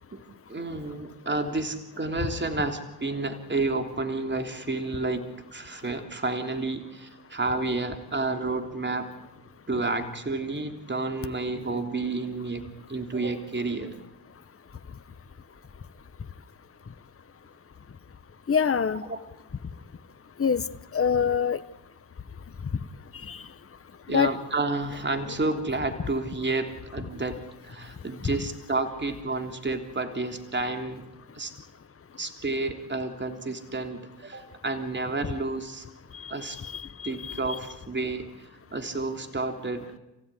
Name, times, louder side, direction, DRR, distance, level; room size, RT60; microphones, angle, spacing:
voice 1, 0.5-9.1 9.7-13.9 19.1-19.2 24.1-31.1 31.3-31.5 32.2-35.9 36.3-36.6 37.0-39.9, right 3 dB, 25° right, 6 dB, 3.4 m, -30 dB
voice 2, 18.5-19.0 20.4-20.6 20.9-21.6 23.3-23.4 24.1-24.3 36.1-37.4, left 6 dB, 30° left, 11 dB, 1.3 m, -25 dB
29.5 x 16.0 x 9.9 m, 0.95 s
supercardioid pair, 60°, 46 cm